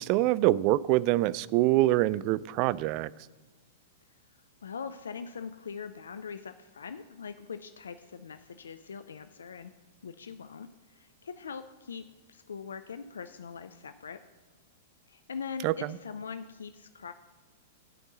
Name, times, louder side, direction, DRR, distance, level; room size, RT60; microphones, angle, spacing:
voice 1, 0.0-3.1 15.6-15.7, right 16 dB, 45° right, 0.3 m, -25 dB
voice 2, 4.6-9.7 10.0-14.2 15.1-17.1, left 6 dB, 75° left, 0.4 m, -42 dB
9.2 x 5.3 x 7.3 m
hypercardioid pair, 105°, 0 cm